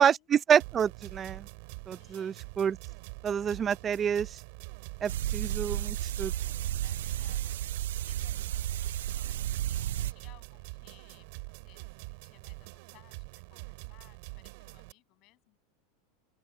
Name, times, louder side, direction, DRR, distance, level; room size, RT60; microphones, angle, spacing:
voice 1, 0.0-1.5 1.9-2.8 3.2-4.4 5.0-6.3, right 8 dB, 20° right, 0.4 m, -27 dB
sound 1, 0.6-14.9, right 29 dB, 55° right, 3.7 m, -45 dB
voice 2, 1.9-2.5 6.8-15.6, left 21 dB, 40° left, 6.7 m, -62 dB
sound 2, 5.1-10.1, right 13 dB, 85° right, 0.3 m, -32 dB
open air
supercardioid pair, 160°, 0 cm